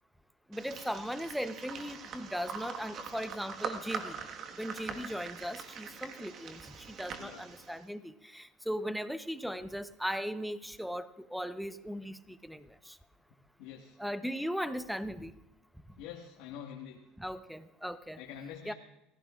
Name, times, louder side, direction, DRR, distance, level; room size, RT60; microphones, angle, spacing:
voice 1, 0.5-4.2 4.6-13.0 14.0-15.3 17.2-18.2 18.6-18.7, equal, ahead, 11 dB, 0.9 m, -38 dB
sound 1, 0.5-7.8, right 6 dB, 45° right, 1.6 m, -43 dB
voice 2, 13.6-14.0 16.0-17.0 18.2-18.7, left 9 dB, 75° left, 0 dB, 1.7 m, -45 dB
30.0 x 15.5 x 2.5 m, 0.87 s
supercardioid pair, 105°, 0 cm